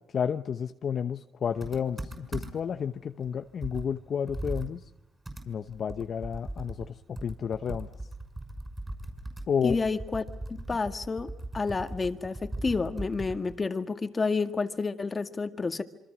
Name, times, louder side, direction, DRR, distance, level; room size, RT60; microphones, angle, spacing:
voice 1, 0.1-4.8 5.5-6.9 7.2-7.9 9.5-9.8, left 7 dB, 55° left, 8 dB, 0.9 m, -31 dB
Computer keyboard, 1.6-2.8 3.2-3.3 3.6-6.9 7.2-13.6, right 1 dB, 15° right, 6.1 m, -39 dB
voice 2, 9.6-10.2 10.5-15.8, left 4 dB, 30° left, 8 dB, 1.9 m, -30 dB
27.0 x 25.0 x 6.2 m, 0.89 s
cardioid pair, 90°, 0 cm